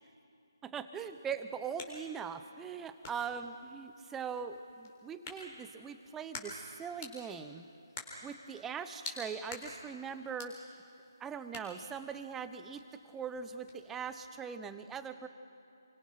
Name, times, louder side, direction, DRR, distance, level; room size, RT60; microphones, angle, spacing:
voice 1, 0.6-7.7 8.2-10.6 11.2-15.3, right 6 dB, 10° right, 10 dB, 0.8 m, -41 dB
sound 1, 1.1-14.4, left 3 dB, 25° left, 4.0 m, -50 dB
29.0 x 24.0 x 5.9 m, 2.7 s
figure-of-eight pair, 150°, 2 cm